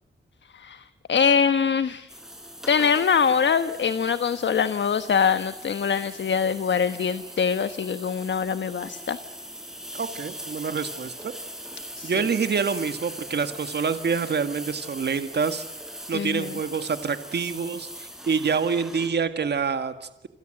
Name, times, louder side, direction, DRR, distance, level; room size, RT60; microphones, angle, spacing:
voice 1, 0.5-2.1 2.7-9.2 12.0-12.1 16.1-16.5, left 6 dB, 70° left, 11 dB, 1.2 m, -23 dB
sound 1, 2.1-19.1, equal, ahead, 5.5 m, -40 dB
voice 2, 9.9-11.3 12.0-15.6 16.1-20.3, right 5 dB, 60° right, 9 dB, 1.8 m, -27 dB
28.0 x 26.5 x 7.8 m, 0.83 s
wide cardioid pair, 100°, 20 cm